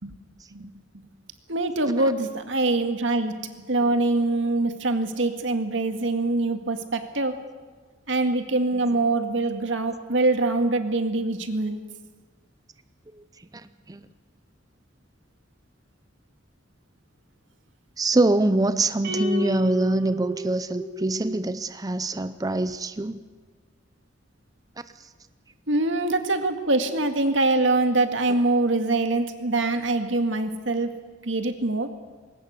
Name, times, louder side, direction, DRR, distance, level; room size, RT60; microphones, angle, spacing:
voice 1, 1.5-3.4 3.7-7.4 8.1-11.8 25.7-31.0 31.2-31.9, right 2 dB, 80° right, 2.0 m, -24 dB
voice 2, 13.5-14.0 18.0-23.2, right 2 dB, 20° right, 0.6 m, -24 dB
sound 1, 19.0-21.5, left 1 dB, 60° right, 7.8 m, -32 dB
21.0 x 18.5 x 8.3 m
head